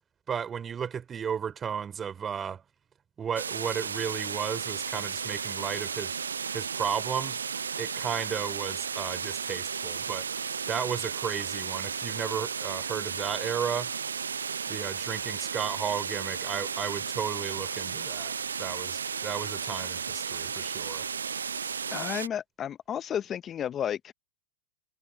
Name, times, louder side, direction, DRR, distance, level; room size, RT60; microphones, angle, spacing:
voice 1, 0.3-2.6 3.2-6.1 6.5-7.4 7.8-10.2 10.7-13.9 14.7-18.3 18.6-21.0, right 7 dB, 20° right, 4.0 m, -34 dB
sound 1, 3.4-22.3, right 6 dB, 85° right, 0.5 m, -34 dB
voice 2, 21.9-24.1, left 9 dB, 25° left, 0.9 m, -32 dB
hypercardioid pair, 110°, 0 cm